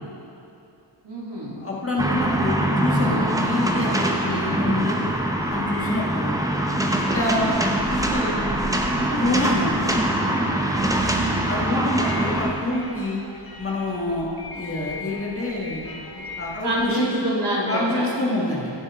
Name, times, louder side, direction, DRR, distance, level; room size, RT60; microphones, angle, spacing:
voice 1, 1.0-1.6 11.0-11.5 16.6-18.1, right 1 dB, 60° right, -5 dB, 2.2 m, -27 dB
voice 2, 1.6-5.0 5.5-6.4 7.1-8.4 9.1-9.8 11.5-13.2 13.6-14.3 14.5-17.1 17.7-18.7, left 1 dB, 30° left, -4 dB, 1.6 m, -26 dB
sound 1, 2.0-12.5, right 1 dB, 10° right, 0.8 m, -23 dB
sound 2, 4.5-17.1, left 3 dB, 50° left, 1.1 m, -40 dB
15.5 x 6.8 x 3.6 m, 2.7 s
wide cardioid pair, 110°, 46 cm